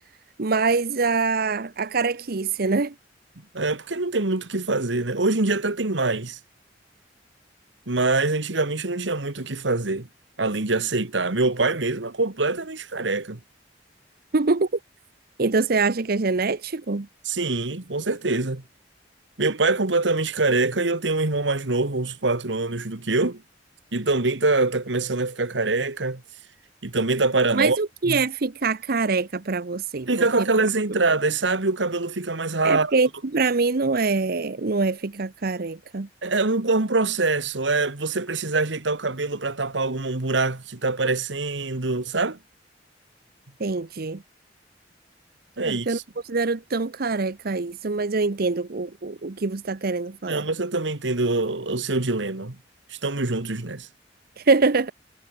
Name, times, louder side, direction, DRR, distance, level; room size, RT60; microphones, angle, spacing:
voice 1, 0.4-2.9 14.3-14.7 15.4-17.1 27.5-30.5 32.6-36.1 43.6-44.2 45.6-46.0 46.2-50.4 54.4-54.9, right 4 dB, 55° right, 0.8 m, -24 dB
voice 2, 3.5-6.4 7.9-10.1 10.4-13.4 17.2-18.6 19.4-23.4 23.9-26.2 26.8-27.8 28.1-28.2 30.1-32.9 36.2-42.4 45.6-46.0 50.3-52.5 52.9-53.9, right 3 dB, 85° right, 1.7 m, -24 dB
head